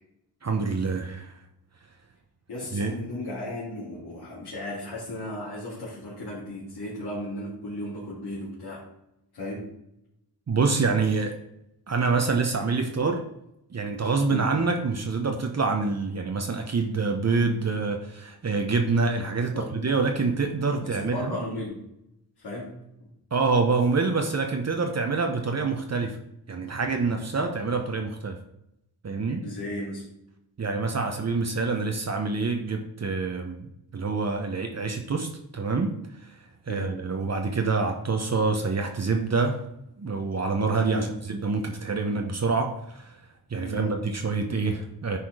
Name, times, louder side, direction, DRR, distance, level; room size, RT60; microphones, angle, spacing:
voice 1, 0.4-1.3 2.7-2.9 10.5-11.3 11.9-13.3 13.7-21.3 23.3-26.2 26.5-28.4 29.0-29.4 30.6-35.9 36.2-36.3 36.7-39.6 40.0-43.1 43.5-45.2, right 4 dB, 40° right, 4 dB, 1.0 m, -26 dB
voice 2, 2.5-8.9 9.3-9.7 14.3-14.6 19.5-19.7 20.8-21.8 22.4-22.7 23.0-23.1 29.4-30.1 36.7-37.0 40.8-41.1 43.6-44.0, left 1 dB, 80° left, -9 dB, 2.9 m, -35 dB
9.7 x 4.3 x 4.9 m, 0.82 s
cardioid pair, 85°, 39 cm